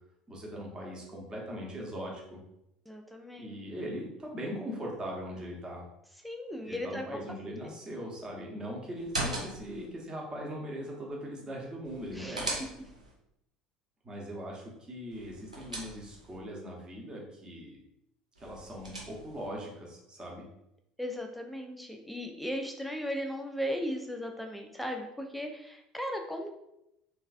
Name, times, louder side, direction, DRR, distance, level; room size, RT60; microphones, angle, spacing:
voice 1, 0.3-2.4 3.4-5.8 6.6-12.6 14.0-17.8 18.4-20.5, equal, 20° right, -2 dB, 0.8 m, -40 dB
voice 2, 2.9-3.6 6.2-7.7 12.1-12.4 21.0-26.5, equal, ahead, 3 dB, 0.4 m, -37 dB
sound 1, 8.9-9.9 11.8-13.1 15.1-16.4 18.3-19.5, right 1 dB, 85° right, 0.5 m, -39 dB
3.0 x 2.3 x 2.5 m, 0.83 s
figure-of-eight pair, 65°, 4 cm